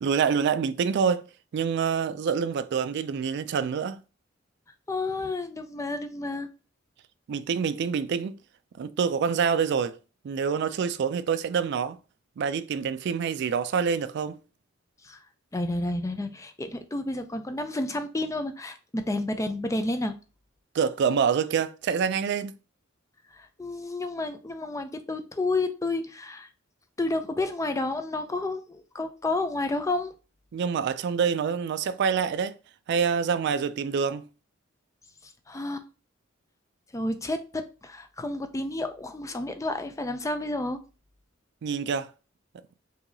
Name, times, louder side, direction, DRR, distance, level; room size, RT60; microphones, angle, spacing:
voice 1, 0.0-1.3 1.5-4.0 7.3-8.4 8.8-10.0 10.2-12.0 12.4-14.4 20.7-22.5 30.5-32.6 32.9-34.3 41.6-42.1, right 6 dB, 60° right, 0.3 m, -26 dB
voice 2, 4.9-6.5 15.0-15.2 15.5-20.2 23.3-26.5 27.0-30.1 35.5-35.8 36.9-40.8, left 2 dB, 15° left, 0.4 m, -30 dB
4.8 x 2.7 x 2.7 m
head